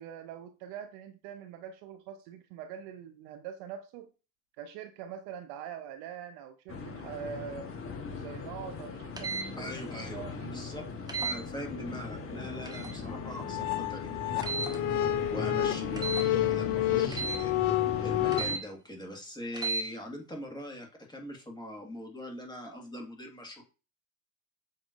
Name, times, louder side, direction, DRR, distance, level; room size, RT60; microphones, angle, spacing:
voice 1, 0.0-4.1 4.6-7.7 8.1-9.7 10.0-10.6, right 8 dB, 60° right, 0.7 m, -43 dB
sound 1, 6.7-18.6, left 4 dB, 30° left, 1.2 m, -39 dB
sound 2, 9.2-9.5 11.1-11.4 12.6-13.0 14.4-14.8 16.0-16.3 17.1-17.4 18.3-18.6 19.5-19.8, right 4 dB, 10° right, 0.8 m, -33 dB
voice 2, 9.6-10.2 10.5-10.8 11.2-23.6, left 1 dB, 10° left, 1.6 m, -42 dB
sound 3, 13.1-18.4, left 13 dB, 75° left, 0.7 m, -30 dB
7.3 x 2.9 x 2.5 m
hypercardioid pair, 90°, 46 cm